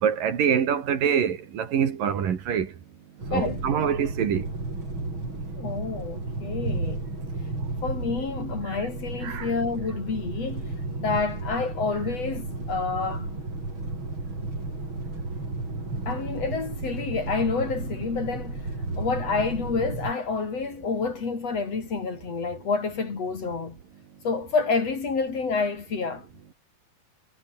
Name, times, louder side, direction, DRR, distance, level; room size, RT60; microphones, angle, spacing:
voice 1, 0.0-2.7 3.3-4.5 9.2-9.5, right 8 dB, 65° right, 4.0 m, -25 dB
sound 1, 3.2-20.1, right 2 dB, 30° right, 7.9 m, -33 dB
voice 2, 3.3-3.6 5.6-7.0 7.8-13.3 16.1-18.6 19.0-23.8 24.2-26.3, left 4 dB, 45° left, 4.4 m, -28 dB
omnidirectional pair, 4.3 m